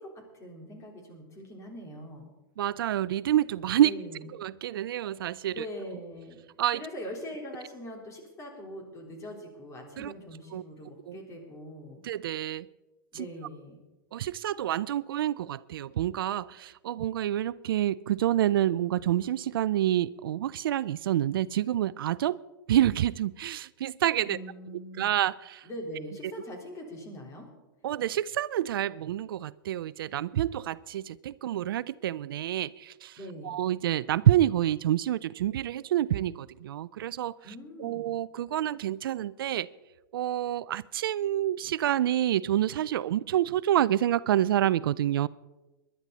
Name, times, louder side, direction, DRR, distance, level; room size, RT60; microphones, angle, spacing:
voice 1, 0.0-2.3 3.8-4.3 5.5-6.4 6.7-12.0 13.1-13.8 24.2-25.1 25.6-27.5 33.2-33.6 37.4-38.1, equal, 25° left, 1 dB, 3.9 m, -42 dB
voice 2, 2.6-3.9 4.4-5.6 6.6-6.8 10.0-10.1 10.5-10.6 11.1-11.2 12.0-12.7 13.1-13.3 14.1-22.4 22.7-24.4 25.0-25.7 27.8-33.2 33.4-37.3 37.8-39.7 40.1-45.3, right 12 dB, 75° right, 20 dB, 0.4 m, -28 dB
20.5 x 11.5 x 4.1 m, 1.1 s
hypercardioid pair, 120°, 12 cm